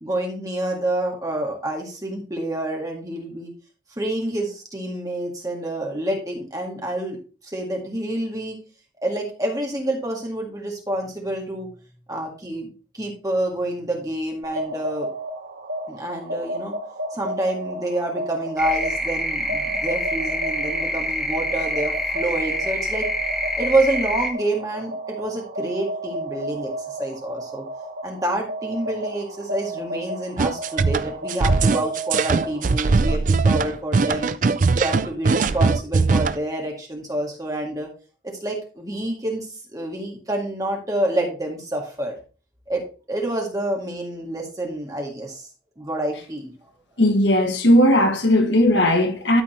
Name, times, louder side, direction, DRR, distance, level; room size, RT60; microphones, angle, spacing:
voice 1, 0.0-3.5 4.0-7.2 7.4-8.6 9.0-11.7 12.1-15.1 15.9-16.8 17.1-23.1 23.6-27.6 28.0-34.3 34.7-37.9 38.2-42.1 42.7-42.8 43.1-45.5 45.8-46.5, right 1 dB, 20° right, 2.1 m, -28 dB
sound 1, 14.4-32.9, right 1 dB, 85° right, 2.7 m, -33 dB
sound 2, 18.6-24.3, equal, ahead, 1.4 m, -26 dB
sound 3, 30.4-36.4, right 4 dB, 45° right, 0.4 m, -20 dB
voice 2, 47.0-49.4, left 1 dB, 70° left, 1.4 m, -17 dB
12.5 x 4.2 x 4.3 m
head